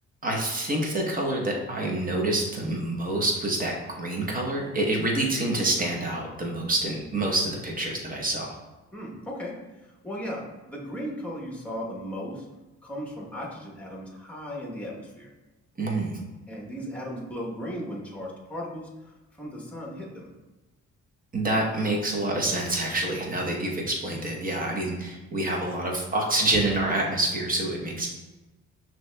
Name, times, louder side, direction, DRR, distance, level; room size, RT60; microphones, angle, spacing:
voice 1, 0.2-8.5 15.8-16.1 21.3-28.1, right 2 dB, 30° right, 0 dB, 0.9 m, -27 dB
voice 2, 8.9-9.6 10.0-12.4 12.8-15.3 16.5-20.3 24.5-24.7, equal, 5° left, -2 dB, 1.0 m, -36 dB
5.9 x 2.9 x 2.2 m, 1.1 s
cardioid pair, 90°, 30 cm